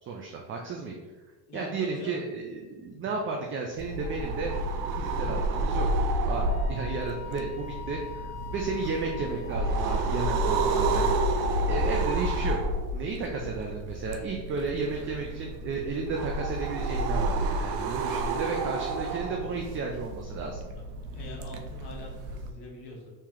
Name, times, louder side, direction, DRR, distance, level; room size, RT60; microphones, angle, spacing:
voice 1, 0.0-1.0 1.5-4.5 5.0-5.9 6.2-11.1 11.7-12.6 12.9-20.6, right 4 dB, 30° right, 0 dB, 0.4 m, -33 dB
voice 2, 1.5-2.2 21.0-23.1, left 1 dB, 55° left, -1 dB, 1.2 m, -42 dB
sound 1, 3.8-22.5, right 2 dB, 85° right, 0.6 m, -30 dB
Wind instrument woodwind instrument, 6.5-10.5, left 8 dB, 40° left, 0.4 m, -44 dB
3.2 x 2.9 x 3.6 m, 1.2 s
supercardioid pair, 105°, 47 cm